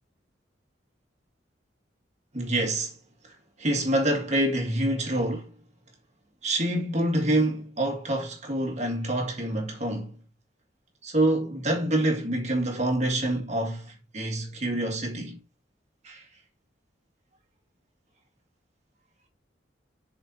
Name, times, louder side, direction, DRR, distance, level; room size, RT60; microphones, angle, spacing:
voice 1, 2.3-2.9 3.6-5.5 6.4-10.1 11.0-15.4 16.0-16.2, right 1 dB, 40° right, 1.9 m, -26 dB
6.9 x 4.5 x 4.1 m
head